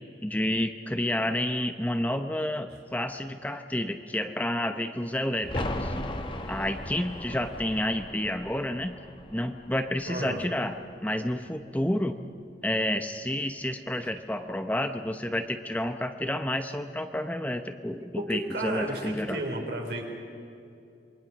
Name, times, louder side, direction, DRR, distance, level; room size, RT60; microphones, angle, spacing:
voice 1, 0.2-5.9 6.5-8.9 9.3-12.2 12.6-19.4, left 1 dB, 10° left, 7 dB, 0.8 m, -30 dB
sound 1, 5.4-11.0 11.3-11.4, left 1 dB, 30° left, 1.5 m, -37 dB
voice 2, 10.0-10.5 18.2-20.0, right 1 dB, 70° right, 1 dB, 4.6 m, -33 dB
27.0 x 22.5 x 6.3 m, 2.6 s
head